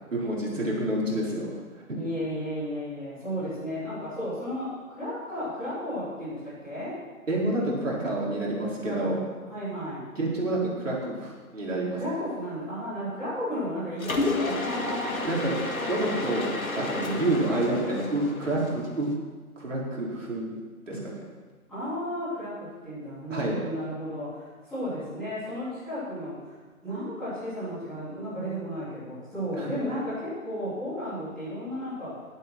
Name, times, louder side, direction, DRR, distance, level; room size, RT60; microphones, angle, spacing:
voice 1, 0.1-1.5 7.3-9.2 10.2-12.0 15.2-15.5 15.9-19.1 19.6-20.5 20.9-21.2 23.3-23.5 29.5-29.7, right 1 dB, 55° right, -4 dB, 4.5 m, -28 dB
voice 2, 1.9-4.7 5.0-7.0 8.8-9.2 9.5-10.0 11.9-16.2 16.9-17.5 21.7-26.5 26.8-32.2, equal, ahead, -18 dB, 3.7 m, -34 dB
Mechanisms, 14.0-19.1, left 2 dB, 70° left, 1.9 m, -31 dB
11.5 x 11.5 x 6.2 m, 1.4 s
figure-of-eight pair, 170°, 44 cm